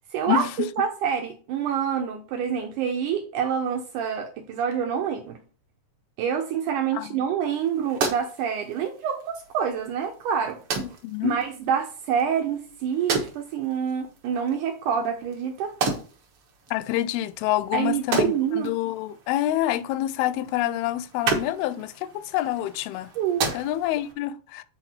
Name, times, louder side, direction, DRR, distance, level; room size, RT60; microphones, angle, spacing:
voice 1, 0.1-5.4 6.2-10.6 11.2-15.7 17.7-18.7 23.2-23.5, right 8 dB, 80° right, 1.9 m, -27 dB
sound 1, 7.5-24.1, right 5 dB, 60° right, 1.4 m, -34 dB
voice 2, 10.8-11.4 16.7-23.1 23.5-24.6, left 13 dB, 85° left, 2.5 m, -27 dB
8.1 x 4.4 x 4.3 m
omnidirectional pair, 4.4 m